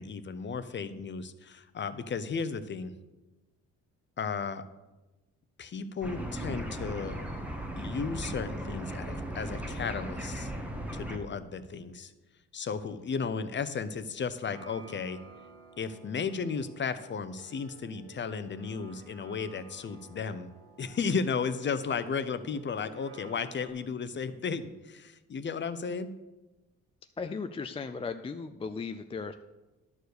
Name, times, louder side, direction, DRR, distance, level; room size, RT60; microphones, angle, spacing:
voice 1, 0.0-2.9 4.2-4.6 5.6-7.2 7.8-10.5 10.9-12.1 12.5-15.2 15.8-20.5 20.8-26.1, left 5 dB, 40° left, 12 dB, 0.7 m, -34 dB
sound 1, 6.0-11.2, right 1 dB, 5° right, 1.3 m, -37 dB
sound 2, 14.5-23.7, right 4 dB, 50° right, 2.3 m, -53 dB
voice 2, 27.2-29.3, left 4 dB, 20° left, 8 dB, 0.4 m, -36 dB
11.0 x 4.6 x 6.6 m, 1.1 s
cardioid pair, 90°, 30 cm